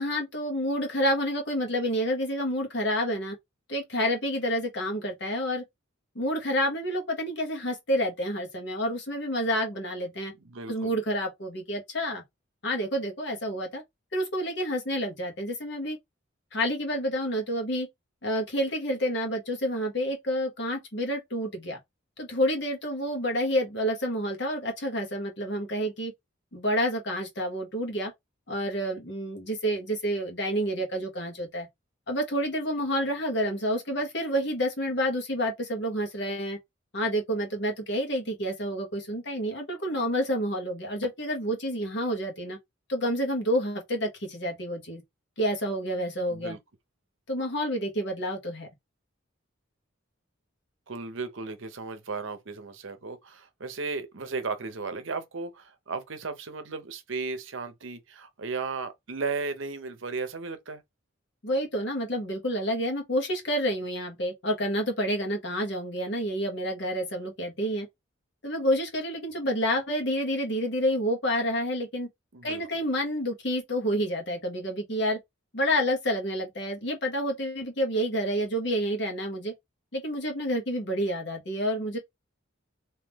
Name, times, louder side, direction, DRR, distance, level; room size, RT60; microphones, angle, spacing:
voice 1, 0.0-3.4 3.7-5.6 6.1-10.3 10.7-12.2 12.6-13.8 14.1-16.0 16.5-17.9 18.2-21.8 22.2-26.1 26.5-28.1 28.5-31.7 32.1-36.6 36.9-42.6 42.9-45.0 45.4-46.6 47.3-48.7 61.4-67.9 68.4-72.1 72.4-75.2 75.5-79.5 79.9-82.0, equal, 55° left, 1.2 m, -29 dB
voice 2, 10.4-10.9 46.3-46.6 50.9-60.8 72.3-72.7, right 4 dB, 70° right, 0.8 m, -35 dB
3.6 x 2.8 x 2.9 m
head